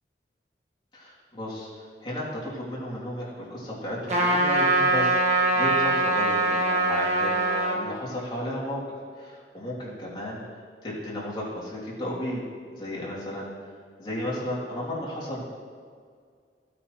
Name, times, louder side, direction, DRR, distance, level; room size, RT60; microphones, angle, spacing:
voice 1, 0.9-8.8 9.1-12.4 12.7-13.7 14.0-15.4, equal, 25° left, -7 dB, 2.9 m, -34 dB
Trumpet, 4.1-7.8, right 2 dB, 40° right, 1.6 m, -23 dB
15.0 x 8.9 x 3.2 m, 2.1 s
head